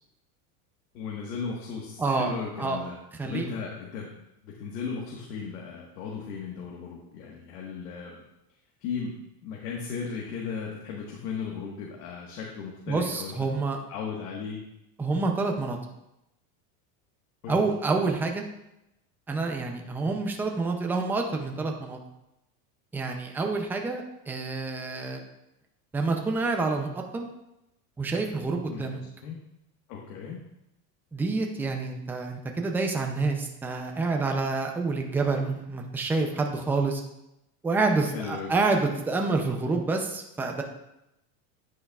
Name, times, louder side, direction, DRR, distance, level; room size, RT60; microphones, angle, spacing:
voice 1, 0.9-3.0 3.2-4.1 4.4-8.2 8.8-9.2 9.4-13.3 13.9-14.6 17.4-17.6 28.7-29.4 29.9-30.4 38.1-38.5, left 6 dB, 85° left, -2 dB, 1.6 m, -36 dB
voice 2, 2.0-2.3 2.6-2.8 3.2-3.5 12.9-13.8 15.0-15.8 17.5-18.4 19.3-22.0 22.9-25.2 25.9-27.3 28.0-29.0 31.1-37.0 37.6-40.6, right 3 dB, 5° right, 3 dB, 0.4 m, -28 dB
9.8 x 8.6 x 2.4 m, 0.88 s
supercardioid pair, 150°, 44 cm